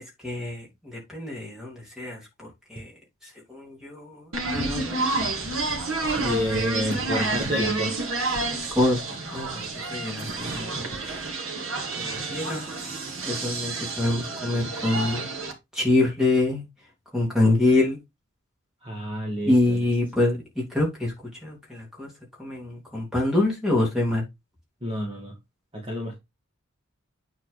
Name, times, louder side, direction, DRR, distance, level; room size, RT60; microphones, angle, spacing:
voice 1, 0.2-2.9 3.2-5.1 8.7-9.0 9.3-11.0 12.0-12.9 13.2-15.3 15.7-16.6 17.1-18.0 19.4-21.1 21.4-22.1 22.4-24.2, left 2 dB, 5° right, 3.2 m, -26 dB
sound 1, 4.3-15.5, right 3 dB, 65° right, 2.3 m, -29 dB
voice 2, 6.2-8.1 18.8-19.8 24.8-25.3 25.7-26.2, left 1 dB, 25° right, 2.1 m, -29 dB
9.3 x 4.4 x 4.0 m
head